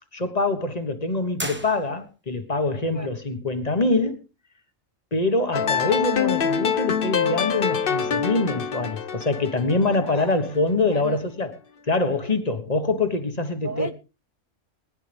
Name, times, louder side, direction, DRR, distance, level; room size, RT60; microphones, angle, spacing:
voice 1, 0.1-4.2 5.1-11.6 11.9-13.9, left 2 dB, 30° left, 1.4 m, -24 dB
sound 1, 1.4-2.4, right 1 dB, 10° right, 1.3 m, -35 dB
voice 2, 2.9-3.1 10.1-10.3 10.9-11.2 13.6-13.9, right 2 dB, 30° right, 0.3 m, -32 dB
sound 2, 5.5-10.6, left 7 dB, 50° left, 1.0 m, -25 dB
21.0 x 10.5 x 3.4 m
omnidirectional pair, 1.3 m